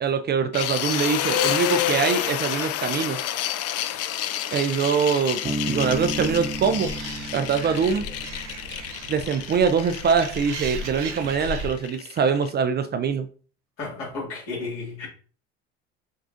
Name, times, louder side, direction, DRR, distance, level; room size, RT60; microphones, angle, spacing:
voice 1, 0.0-3.2 4.5-6.9 7.3-8.1 9.1-13.3, right 6 dB, 30° right, 0.4 m, -23 dB
sound 1, 0.5-12.5, left 11 dB, 45° left, 0.4 m, -29 dB
Bass guitar, 5.4-9.0, right 1 dB, 15° right, 0.9 m, -33 dB
Animal, 5.9-11.7, right 2 dB, 90° right, 0.7 m, -37 dB
voice 2, 13.8-15.1, left 3 dB, 65° left, 2.1 m, -33 dB
6.2 x 2.4 x 2.6 m
hypercardioid pair, 70°, 34 cm